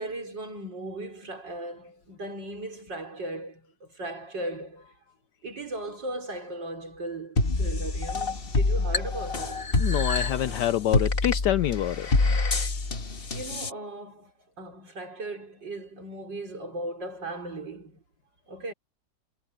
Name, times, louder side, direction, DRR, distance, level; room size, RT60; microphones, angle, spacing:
voice 1, 0.0-4.9 5.4-9.7 13.3-18.0 18.5-18.7, right 2 dB, 60° right, 5.7 m, -37 dB
sound 1, 7.4-13.7, left 3 dB, 30° left, 1.5 m, -26 dB
voice 2, 9.8-12.1, left 12 dB, 75° left, 1.0 m, -26 dB
omnidirectional pair, 2.2 m